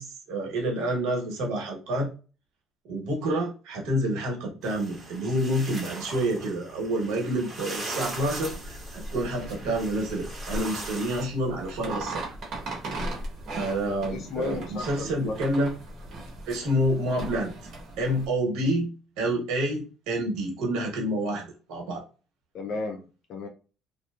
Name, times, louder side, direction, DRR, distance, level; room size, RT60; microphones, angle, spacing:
voice 1, 0.0-2.1 2.9-12.2 13.5-15.7 16.4-17.5 18.0-18.9 19.2-22.0, right 1 dB, 80° right, 0 dB, 1.0 m, -28 dB
sound 1, 4.6-11.2, right 2 dB, 20° right, 1.0 m, -39 dB
sound 2, 8.1-18.3, right 2 dB, 50° right, 1.0 m, -38 dB
voice 2, 14.1-15.5 22.5-23.5, left 4 dB, 60° left, 3 dB, 0.4 m, -34 dB
2.7 x 2.2 x 2.3 m, 0.35 s
cardioid pair, 115°, 0 cm